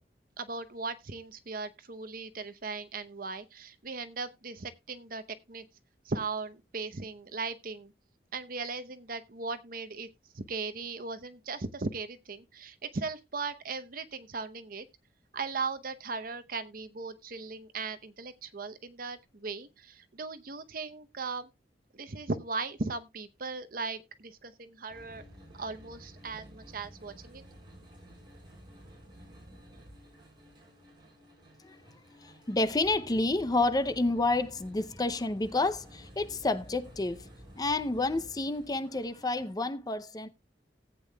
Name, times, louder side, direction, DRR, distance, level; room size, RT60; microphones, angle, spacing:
voice 1, 0.4-5.6 6.0-7.9 8.3-10.1 10.3-14.9 15.3-21.5 21.9-25.2 25.5-27.4, right 4 dB, 55° right, 0.8 m, -38 dB
sound 1, 24.9-39.6, equal, 25° right, 4.1 m, -52 dB
voice 2, 32.5-37.2 37.6-40.3, left 2 dB, 20° left, 0.5 m, -29 dB
18.0 x 8.3 x 2.2 m
head